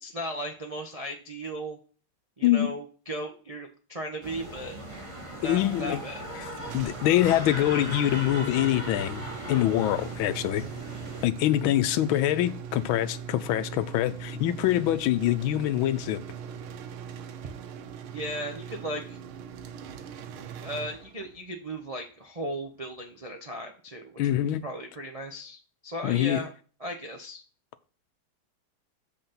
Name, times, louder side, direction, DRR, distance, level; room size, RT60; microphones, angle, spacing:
voice 1, 0.0-1.8 2.4-4.8 5.4-6.2 18.1-19.2 20.6-24.2 24.6-26.5 26.8-27.4, right 1 dB, 65° right, 0.3 m, -36 dB
voice 2, 2.4-2.8 5.4-6.0 6.4-6.5 6.7-10.6 11.2-16.2 24.2-24.6 26.0-26.4, left 13 dB, 80° left, 1.4 m, -25 dB
sound 1, 4.2-11.3, right 1 dB, 15° right, 1.7 m, -38 dB
sound 2, 6.5-21.5, right 7 dB, 85° right, 1.7 m, -41 dB
7.9 x 4.1 x 5.7 m
omnidirectional pair, 2.3 m